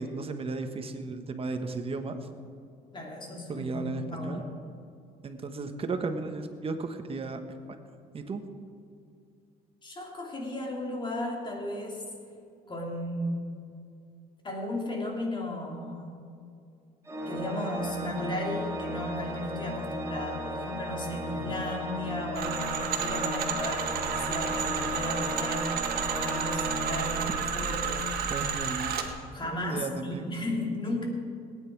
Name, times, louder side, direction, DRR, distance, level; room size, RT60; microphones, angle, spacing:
voice 1, 0.0-2.3 3.5-4.4 5.2-7.4 8.1-8.4 28.3-28.9 29.4-30.8, right 3 dB, 35° right, 7 dB, 1.2 m, -35 dB
voice 2, 2.9-4.5 9.8-12.0 12.7-13.6 14.4-16.3 17.3-28.1 29.3-31.1, left 1 dB, 30° left, 0 dB, 2.7 m, -35 dB
Organ, 17.1-27.9, equal, 15° right, 1.6 m, -36 dB
sound 1, 22.4-29.1, right 7 dB, 65° right, 1.5 m, -31 dB
18.5 x 9.3 x 4.7 m, 2.4 s
cardioid pair, 110°, 17 cm